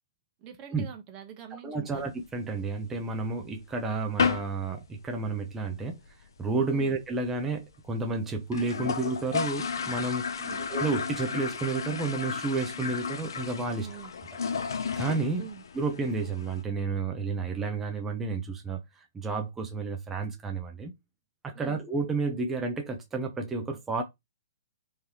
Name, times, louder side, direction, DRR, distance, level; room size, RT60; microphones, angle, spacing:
voice 1, 0.4-2.1 6.7-7.0 10.4-10.6 13.7-14.1 15.4-15.6 21.5-21.8, right 8 dB, 30° right, 1.1 m, -45 dB
voice 2, 1.6-6.0 6.4-13.9 14.9-15.5 15.7-18.8 19.1-20.9 21.4-24.0, right 3 dB, 10° right, 0.7 m, -31 dB
sound 1, 2.0-3.0 3.4-3.5 3.7-3.9 4.2-4.6 4.9-5.0 5.3-5.4 5.6-6.1 6.5-6.6 6.7-6.8 7.1-7.2 7.7-7.8 8.0-8.1 8.4-16.6, left 6 dB, 75° left, 0.6 m, -33 dB
3.8 x 3.1 x 2.9 m
hypercardioid pair, 140°, 2 cm